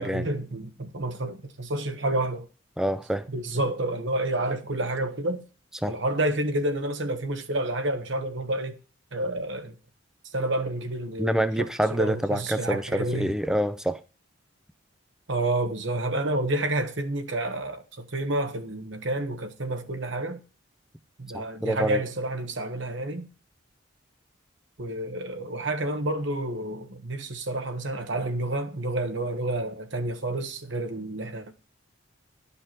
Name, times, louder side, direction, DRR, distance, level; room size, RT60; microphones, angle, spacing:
voice 1, 0.0-2.5 3.3-5.4 5.9-8.8 9.1-9.8 10.3-13.3 15.3-20.4 21.2-23.3 24.8-31.5, right 1 dB, 60° right, 1.3 m, -29 dB
voice 2, 2.8-3.3 5.8-6.0 11.2-14.0 21.3-22.0, right 1 dB, 5° right, 0.6 m, -27 dB
11.5 x 5.6 x 4.5 m
head